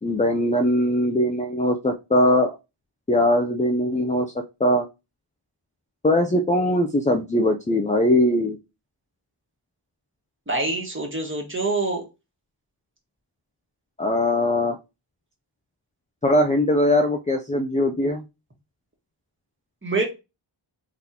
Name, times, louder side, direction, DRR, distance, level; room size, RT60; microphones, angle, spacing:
voice 1, 0.0-2.6 3.1-4.3 4.6-4.8 6.0-8.6 14.0-14.8 16.2-18.2, left 1 dB, 15° left, 3 dB, 0.4 m, -21 dB
voice 2, 10.5-12.0 19.8-20.0, right 3 dB, 25° right, 1 dB, 1.4 m, -25 dB
4.0 x 3.6 x 2.9 m, 0.26 s
wide cardioid pair, 65°, 47 cm